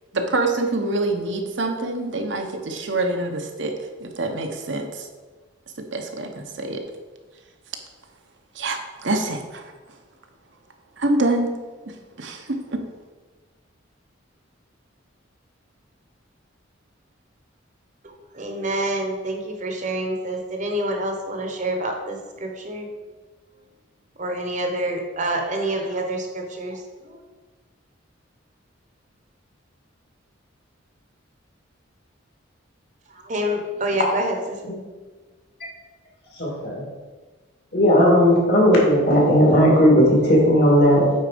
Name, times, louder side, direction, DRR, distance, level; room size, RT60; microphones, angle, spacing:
voice 1, 0.1-5.1 5.9-6.8 8.5-9.6 11.0-11.5 12.2-12.8, right 2 dB, 65° right, 4 dB, 0.9 m, -25 dB
voice 2, 18.0-22.9 24.2-27.2 33.1-34.6, right 1 dB, 40° right, 3 dB, 1.0 m, -27 dB
voice 3, 36.4-36.8 37.7-41.1, equal, 55° left, -2 dB, 2.3 m, -16 dB
8.7 x 4.0 x 5.1 m, 1.3 s
head